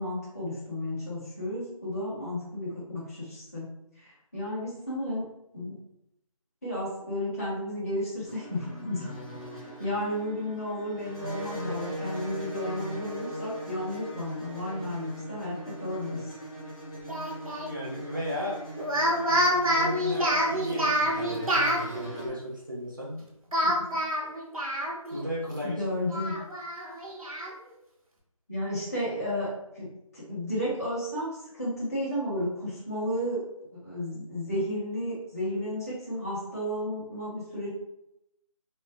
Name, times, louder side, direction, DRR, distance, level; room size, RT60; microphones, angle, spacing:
voice 1, 0.0-3.7 4.0-5.2 5.5-5.7 6.6-9.1 9.8-16.3 23.6-24.0 25.6-26.3 28.5-29.5 29.7-29.9 30.1-33.4 33.8-37.7, left 1 dB, 25° left, -10 dB, 1.4 m, -33 dB
sound 1, 8.2-22.3, right 1 dB, 10° left, 0.6 m, -39 dB
Speech, 17.1-17.7 18.8-21.8 23.5-25.2 25.6-25.7 26.1-27.5, equal, 75° right, 1.0 m, -27 dB
voice 2, 17.6-18.6 19.6-23.2 25.1-25.8, equal, 35° right, -6 dB, 0.6 m, -35 dB
3.1 x 2.0 x 3.6 m, 0.82 s
figure-of-eight pair, 175°, 18 cm